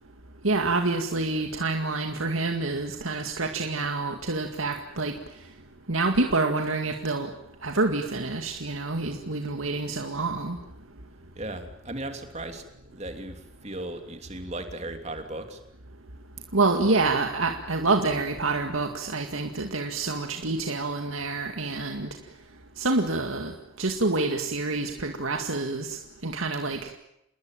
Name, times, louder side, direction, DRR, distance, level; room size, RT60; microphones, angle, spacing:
voice 1, 0.4-5.1 5.9-7.3 7.6-10.6 16.5-22.1 22.8-23.5 23.8-26.8, right 3 dB, 85° right, 4 dB, 2.2 m, -27 dB
voice 2, 11.3-12.6 12.9-15.6, right 1 dB, 30° right, 6 dB, 3.1 m, -36 dB
28.0 x 20.5 x 9.1 m, 0.83 s
head